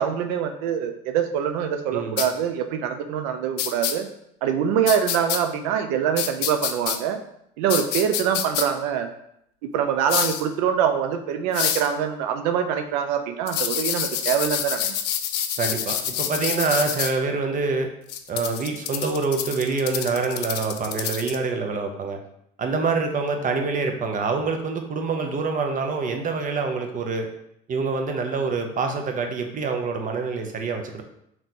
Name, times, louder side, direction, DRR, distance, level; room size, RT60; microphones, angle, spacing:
voice 1, 0.0-4.1 4.4-7.2 7.6-9.1 9.7-14.9, right 8 dB, 85° right, 6 dB, 0.4 m, -24 dB
sound 1, 2.2-2.3 3.6-3.9 4.9-5.4 6.2-7.0 7.7-8.6 10.1-10.4 11.5-11.9 13.5-17.1 18.1-21.4, left 10 dB, 90° left, 0.4 m, -27 dB
voice 2, 15.6-17.9 18.3-22.2 22.6-27.3 27.7-31.0, right 4 dB, 40° right, 4 dB, 0.7 m, -26 dB
3.1 x 2.9 x 4.1 m, 0.76 s
supercardioid pair, 75°, 20 cm